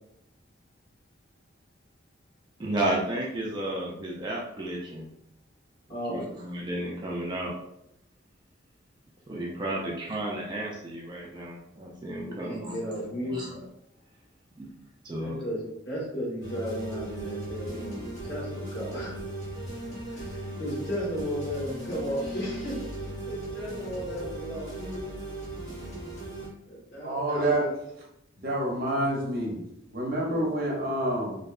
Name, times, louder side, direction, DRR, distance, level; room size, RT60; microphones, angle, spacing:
voice 1, 2.6-5.1 6.1-7.5 9.3-12.8 13.2-13.6 14.6-14.7 15.0-15.4, right 1 dB, 25° right, -3 dB, 0.3 m, -32 dB
voice 2, 5.9-6.3 9.3-9.8 12.2-13.4 15.2-19.2 20.1-25.0 26.7-27.7 30.3-30.5, equal, 60° left, -7 dB, 1.2 m, -35 dB
sound 1, 16.4-26.5, right 1 dB, 80° left, 1.3 m, -37 dB
voice 3, 27.0-27.7 28.4-29.6 29.9-31.4, right 1 dB, 50° right, -3 dB, 0.7 m, -27 dB
2.7 x 2.2 x 2.3 m, 0.80 s
head